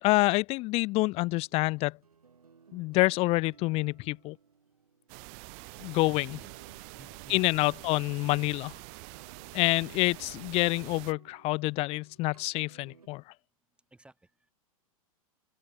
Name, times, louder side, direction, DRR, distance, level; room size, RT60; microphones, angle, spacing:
voice 1, 0.0-2.0 2.7-4.4 5.8-6.4 7.3-8.7 9.5-13.2, left 22 dB, 35° left, 0.5 m, -27 dB
sound 1, 1.4-13.1, right 5 dB, 80° right, 2.8 m, -58 dB
sound 2, 5.1-11.1, right 40 dB or more, 40° right, 0.6 m, -46 dB
voice 2, 5.8-7.7 13.9-14.5, right 2 dB, 5° right, 5.9 m, -58 dB
open air
figure-of-eight pair, 100°, 19 cm